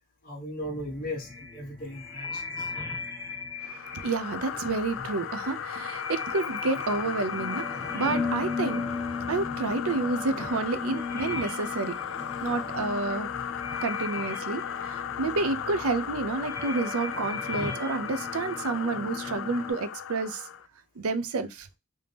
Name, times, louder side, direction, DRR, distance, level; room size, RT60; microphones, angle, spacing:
voice 1, 0.2-2.7 10.4-10.5, left 1 dB, 40° left, 1.0 m, -37 dB
sound 1, 0.6-19.7, left 4 dB, 15° left, 1.4 m, -37 dB
sound 2, 3.6-20.7, left 9 dB, 60° left, 0.3 m, -36 dB
voice 2, 3.6-8.8 9.3-12.0 12.4-13.3 13.8-20.5 21.0-21.7, right 3 dB, 80° right, 0.5 m, -30 dB
3.4 x 2.7 x 3.3 m
head